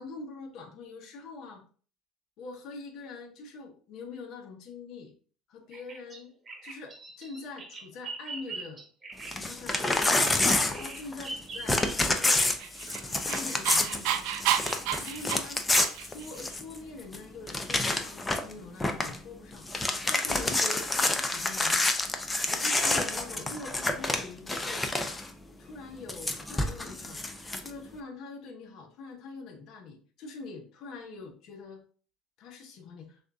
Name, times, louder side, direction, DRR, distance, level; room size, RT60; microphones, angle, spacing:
voice 1, 0.0-1.6 2.4-5.1 5.5-6.3 6.6-8.9 9.3-10.3 10.6-11.7 12.1-12.5 12.9-14.3 14.9-15.6 16.0-21.8 22.4-24.9 25.6-27.2 27.6-31.8 32.4-33.2, left 3 dB, 65° left, 2 dB, 1.1 m, -44 dB
Bird vocalization bird call bird song, 5.7-12.3, right 3 dB, 30° right, 1.1 m, -42 dB
Crumpling crinkling / Tearing, 9.2-11.4 11.7-16.8 17.1-17.2 17.5-18.5 18.8-19.2 19.5-25.3 26.1-27.7, left 2 dB, 15° left, 0.6 m, -28 dB
Dog, 12.4-16.3, right 10 dB, 80° right, 0.5 m, -31 dB
6.1 x 2.7 x 2.4 m, 0.41 s
supercardioid pair, 95°, 0 cm